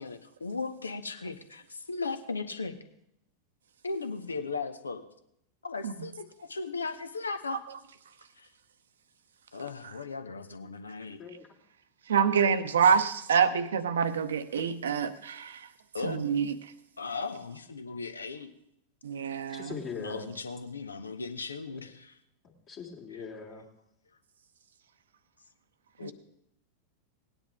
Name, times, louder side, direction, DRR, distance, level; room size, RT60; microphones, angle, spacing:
voice 1, 0.0-2.8 3.8-5.0 5.6-7.6 8.4-8.5 9.5-11.2 15.9-16.2 17.0-18.5 20.0-22.2 23.1-23.2 26.0-26.1, left 4 dB, 75° left, 10 dB, 0.9 m, -37 dB
voice 2, 12.1-15.7 16.0-16.5 19.0-19.8 26.0-26.1, right 7 dB, 65° right, 13 dB, 0.8 m, -26 dB
voice 3, 19.5-20.3 22.7-23.6, left 5 dB, 35° left, 0 dB, 2.0 m, -40 dB
18.0 x 9.9 x 3.6 m, 0.77 s
figure-of-eight pair, 90°, 0 cm